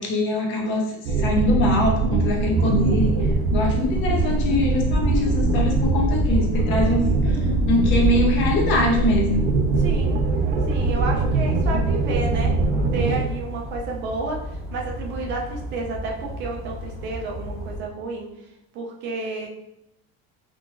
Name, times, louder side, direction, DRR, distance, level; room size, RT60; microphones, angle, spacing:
voice 1, 0.0-9.5, left 1 dB, 40° left, 1 dB, 0.5 m, -23 dB
sound 1, 1.1-13.2, right 3 dB, 80° right, 0.6 m, -22 dB
sound 2, 2.5-17.8, left 1 dB, ahead, 0.7 m, -35 dB
voice 2, 9.8-10.2 10.7-12.5 12.9-18.3 18.7-19.5, right 3 dB, 35° right, 0 dB, 0.4 m, -31 dB
3.7 x 2.5 x 2.4 m, 0.84 s
cardioid pair, 175°, 32 cm